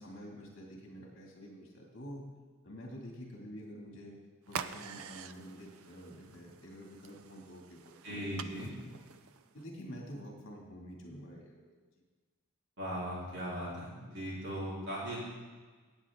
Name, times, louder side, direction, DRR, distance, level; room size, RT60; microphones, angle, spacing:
voice 1, 0.0-2.2 2.6-4.2 4.5-9.0 9.5-11.8, equal, 60° left, -2 dB, 2.3 m, -48 dB
sound 1, 4.5-9.7, right 7 dB, 70° right, 0.4 m, -46 dB
voice 2, 8.0-8.7 12.8-15.2, equal, 50° right, -7 dB, 3.9 m, -38 dB
17.5 x 7.5 x 3.7 m, 1.4 s
head